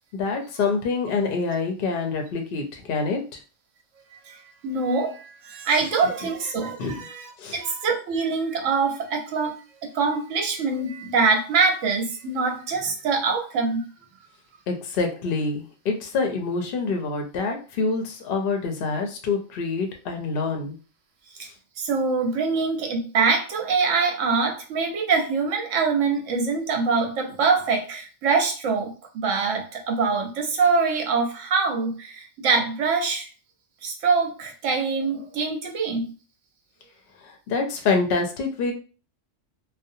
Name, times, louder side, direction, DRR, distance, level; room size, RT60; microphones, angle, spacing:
voice 1, 0.1-3.4 6.8-7.0 7.4-7.6 14.7-20.8 37.2-38.7, left 4 dB, 60° left, 0.6 m, -26 dB
voice 2, 4.2-13.9 21.4-21.5 21.8-33.3 33.8-36.1, right 4 dB, 80° right, 1.0 m, -24 dB
2.6 x 2.0 x 2.6 m
omnidirectional pair, 1.3 m